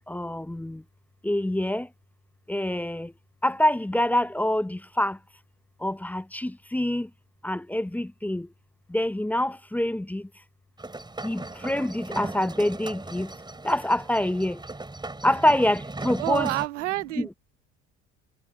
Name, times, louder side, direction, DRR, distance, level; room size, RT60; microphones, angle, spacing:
voice 1, 0.1-0.8 1.2-1.9 2.5-3.1 3.4-5.2 5.8-7.1 7.4-8.5 8.9-10.2 11.2-13.3 13.6-14.6 15.2-16.5 17.2-17.3, left 1 dB, 5° left, 0.7 m, -26 dB
sound 1, 10.8-16.7, right 2 dB, 10° right, 4.7 m, -38 dB
voice 2, 16.2-17.3, right 17 dB, 75° right, 0.5 m, -28 dB
hypercardioid pair, 65°, 36 cm